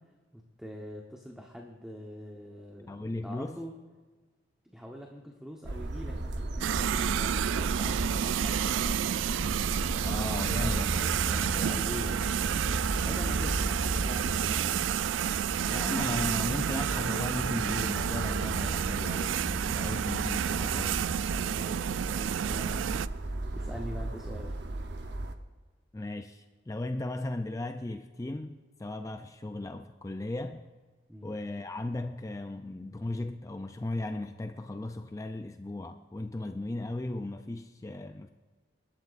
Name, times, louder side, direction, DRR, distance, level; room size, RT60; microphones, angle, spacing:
voice 1, 0.3-3.0 3.2-3.7 4.6-8.9 10.4-10.8 11.7-12.2 13.0-14.8 21.5-22.9 23.5-24.5 31.1-31.3, equal, 5° right, 1.0 m, -43 dB
voice 2, 2.9-3.6 10.0-11.9 15.7-21.0 25.9-30.7 31.2-38.3, left 2 dB, 15° left, 0.4 m, -36 dB
sound 1, 5.6-25.3, right 2 dB, 65° right, 0.9 m, -35 dB
sound 2, 6.6-23.1, right 9 dB, 85° right, 0.3 m, -30 dB
24.5 x 12.0 x 2.5 m
head